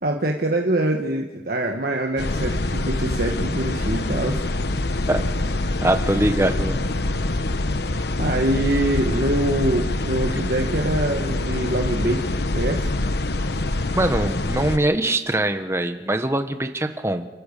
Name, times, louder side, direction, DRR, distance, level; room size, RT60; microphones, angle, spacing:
voice 1, 0.0-4.4 8.2-12.9, right 1 dB, 55° right, 2 dB, 1.4 m, -24 dB
sound 1, 2.2-14.8, left 2 dB, 65° left, 1.1 m, -25 dB
voice 2, 5.8-6.8 13.9-17.3, right 1 dB, 15° right, 7 dB, 1.4 m, -22 dB
28.5 x 14.5 x 6.8 m, 1.2 s
head